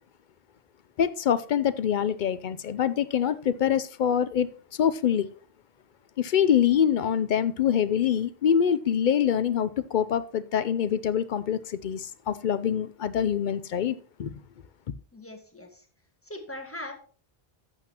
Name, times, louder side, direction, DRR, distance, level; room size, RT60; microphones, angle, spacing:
voice 1, 1.0-4.5 4.8-5.3 6.2-14.3, left 9 dB, 60° left, 0.6 m, -25 dB
voice 2, 15.1-15.9 16.2-16.9, left 1 dB, 15° left, 1.5 m, -40 dB
12.0 x 8.2 x 2.9 m
omnidirectional pair, 1.0 m